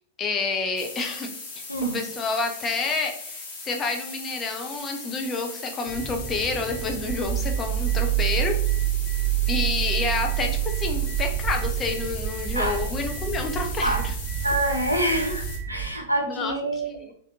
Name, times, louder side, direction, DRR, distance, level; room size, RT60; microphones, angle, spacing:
voice 1, 0.2-1.3 1.9-8.6 9.5-14.1 16.3-17.1, left 4 dB, 20° left, 3 dB, 0.5 m, -29 dB
sound 1, 0.8-15.6, left 3 dB, 40° left, 1.1 m, -39 dB
sound 2, 5.9-15.9, right 11 dB, 30° right, 0.7 m, -27 dB
voice 2, 14.4-17.1, right 1 dB, 90° right, 1 dB, 0.5 m, -26 dB
3.2 x 2.6 x 2.7 m, 0.63 s
figure-of-eight pair, 95°, 0 cm